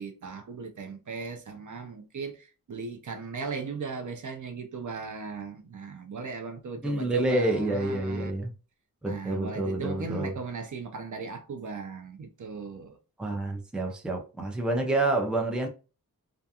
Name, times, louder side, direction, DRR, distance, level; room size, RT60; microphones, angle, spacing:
voice 1, 0.0-8.3 9.0-13.0, right 4 dB, 55° right, 0.5 m, -37 dB
voice 2, 6.8-8.5 9.0-10.3 13.2-15.7, right 2 dB, 5° right, 0.5 m, -28 dB
2.4 x 2.3 x 2.7 m
wide cardioid pair, 115°, 37 cm